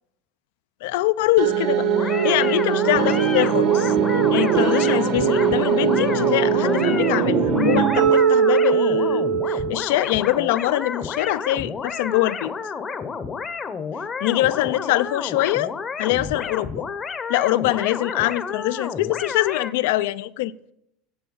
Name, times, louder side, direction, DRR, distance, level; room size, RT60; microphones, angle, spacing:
voice 1, 0.8-3.9 4.3-12.5 14.2-15.7 16.0-16.8 17.3-20.5, left 16 dB, 80° left, 0.4 m, -23 dB
sound 1, 1.4-9.8, right 7 dB, 55° right, 1.1 m, -20 dB
sound 2, 1.9-19.7, left 5 dB, 20° left, 0.7 m, -31 dB
9.4 x 7.3 x 5.5 m
cardioid pair, 150°, 0 cm